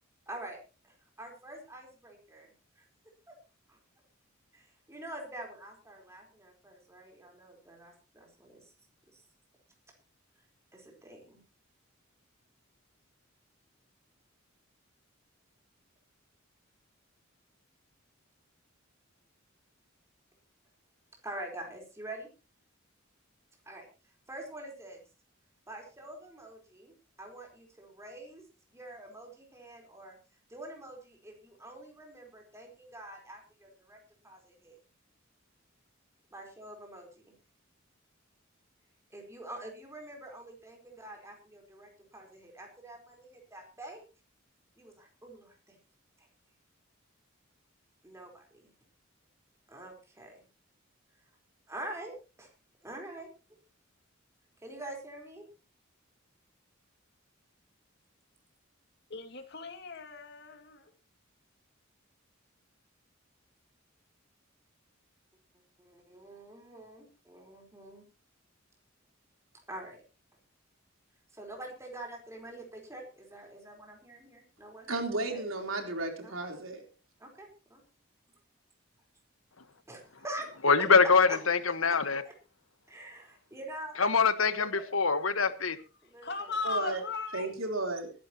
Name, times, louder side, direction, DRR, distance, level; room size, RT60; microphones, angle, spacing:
voice 1, 0.3-0.6 0.9-2.9 3.3-3.4 3.7-3.8 4.5-8.7 9.1-9.2 10.7-11.4 21.2-22.3 23.6-23.9 24.3-25.0 25.7-26.9 27.2-28.5 28.7-30.2 30.5-34.8 36.3-37.3 39.1-44.0 44.8-45.8 46.2-46.3 48.0-48.7 49.7-50.4 51.7-52.5 52.8-53.3 54.6-55.5 65.8-68.0 69.7-70.0 71.3-74.9 75.2-75.5 76.2-76.3 77.2-77.8 79.9-81.4 82.2-82.4 82.9-84.3 84.6-84.9 86.1-86.6, right 1 dB, 15° right, 4.3 m, -46 dB
voice 2, 59.1-60.9 86.2-87.5, left 4 dB, 55° left, 2.5 m, -37 dB
voice 3, 74.9-76.8 86.6-87.0 87.3-88.1, right 2 dB, 75° right, 3.9 m, -33 dB
voice 4, 80.6-82.2 84.0-85.8, left 5 dB, 85° left, 1.4 m, -24 dB
22.5 x 11.5 x 3.0 m
head